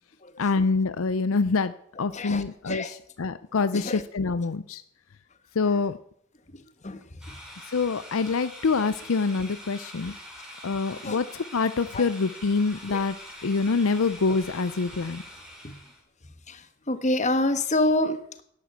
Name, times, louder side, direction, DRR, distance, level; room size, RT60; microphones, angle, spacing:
voice 1, 0.4-1.7 2.0-4.8 5.5-6.0 7.6-10.1 10.6-13.2 13.4-15.2, left 4 dB, 65° left, 14 dB, 0.5 m, -26 dB
voice 2, 2.1-3.0 3.7-4.0 6.8-7.3 10.0-10.1 11.0-11.2 11.9-12.0 12.9-13.0 15.6-15.8 16.5-18.4, left 1 dB, 30° left, 11 dB, 1.2 m, -28 dB
sound 1, 7.2-16.0, equal, 5° right, 3.8 m, -44 dB
11.0 x 11.0 x 8.1 m, 0.68 s
head